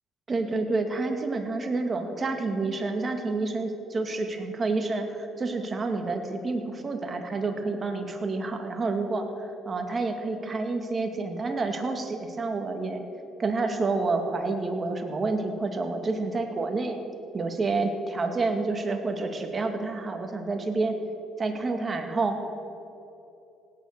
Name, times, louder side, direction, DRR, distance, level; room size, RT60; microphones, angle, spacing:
voice 1, 0.3-13.0 13.4-17.0 17.3-21.0 21.4-22.4, right 3 dB, 35° right, 6 dB, 2.2 m, -29 dB
17.0 x 9.7 x 6.7 m, 2.9 s
supercardioid pair, 65°, 0 cm